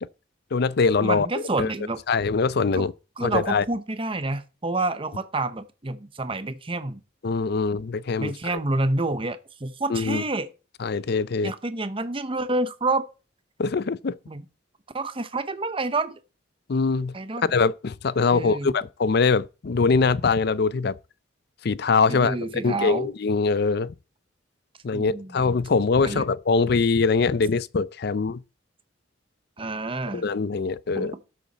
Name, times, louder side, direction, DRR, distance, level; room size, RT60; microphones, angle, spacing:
voice 1, 0.5-1.3 1.6-1.7 2.1-2.9 3.2-3.6 7.2-8.3 9.9-10.2 10.8-11.5 13.6-14.2 16.7-17.1 17.5-20.9 21.6-22.4 22.6-23.9 24.8-28.4 30.1-31.1, left 4 dB, 55° left, 0.5 m, -23 dB
voice 2, 1.0-2.0 2.7-2.9 3.2-7.0 8.2-10.5 11.4-13.1 14.3-14.4 14.9-16.2 17.1-17.5 18.3-18.7 22.1-23.1 24.9-25.4 26.0-26.2 29.6-30.3 30.9-31.2, right 2 dB, 30° right, 0.9 m, -28 dB
13.0 x 7.2 x 4.1 m
head